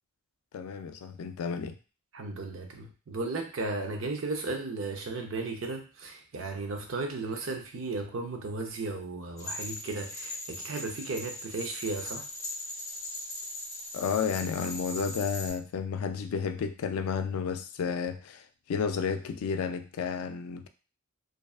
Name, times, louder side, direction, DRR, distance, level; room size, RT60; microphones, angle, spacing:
voice 1, 0.5-1.8 13.9-20.7, left 6 dB, 80° left, 9 dB, 0.3 m, -32 dB
voice 2, 2.1-12.3, right 3 dB, 60° right, 3 dB, 0.5 m, -35 dB
sound 1, 9.4-15.5, left 2 dB, 15° left, 0.7 m, -40 dB
2.6 x 2.3 x 2.3 m, 0.35 s
head